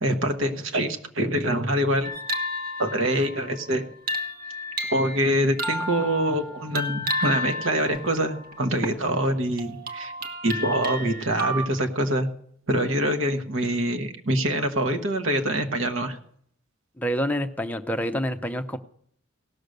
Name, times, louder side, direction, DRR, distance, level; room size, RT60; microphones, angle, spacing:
voice 1, 0.0-2.1 2.8-3.8 4.9-10.1 10.4-12.3 12.7-16.2, right 1 dB, 70° right, 6 dB, 1.3 m, -25 dB
sound 1, 2.0-9.1 9.6-11.7, left 1 dB, 45° right, 1.1 m, -32 dB
voice 2, 17.0-18.8, equal, 10° left, 6 dB, 0.6 m, -27 dB
17.0 x 6.5 x 6.6 m, 0.65 s
head